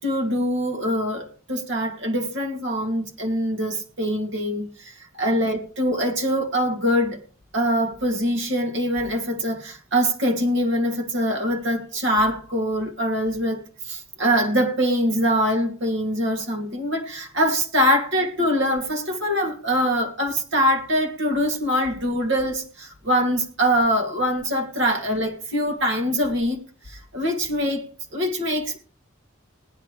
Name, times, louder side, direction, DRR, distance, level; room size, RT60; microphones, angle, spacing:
voice 1, 0.0-7.2 7.5-26.6 26.9-28.8, equal, 65° right, 2.7 m, -23 dB
18.0 x 10.5 x 3.3 m
head